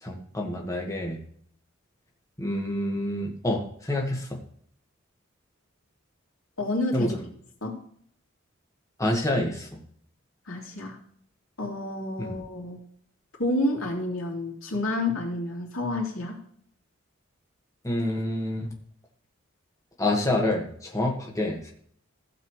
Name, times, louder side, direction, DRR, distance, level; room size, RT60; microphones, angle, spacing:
voice 1, 0.0-1.2 2.4-4.4 6.9-7.1 9.0-9.7 12.2-12.3 17.8-18.7 20.0-21.7, left 1 dB, 15° left, -1 dB, 1.6 m, -27 dB
voice 2, 6.6-7.3 7.6-7.8 10.5-11.0 11.6-12.8 13.4-16.4, left 1 dB, 90° left, -1 dB, 2.8 m, -29 dB
15.5 x 7.2 x 3.2 m, 0.62 s
head